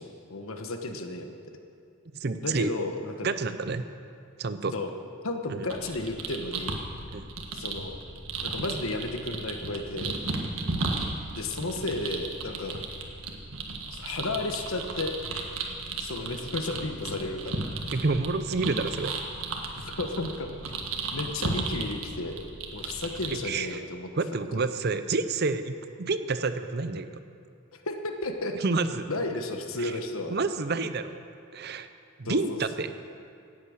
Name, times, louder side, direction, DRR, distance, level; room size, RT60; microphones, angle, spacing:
voice 1, 0.0-1.3 2.4-3.3 4.7-4.9 5.2-6.8 7.5-8.0 8.4-10.2 11.3-12.7 13.9-15.1 16.0-17.6 19.7-20.5 21.1-22.3 22.7-24.7 27.7-28.6 29.1-30.3 32.2-32.9, left 2 dB, 80° left, 5 dB, 1.2 m, -33 dB
voice 2, 2.2-2.7 3.2-3.9 4.4-4.7 5.5-5.7 7.1-7.2 11.0-11.1 17.9-19.1 23.4-23.8 24.2-27.1 28.6-29.1 29.8-29.9 30.3-31.2 31.5-31.9 32.2-32.9, right 3 dB, 50° right, 11 dB, 0.6 m, -29 dB
sound 1, 5.7-23.4, right 3 dB, 80° right, 1.6 m, -35 dB
17.5 x 8.7 x 6.5 m, 2.4 s
head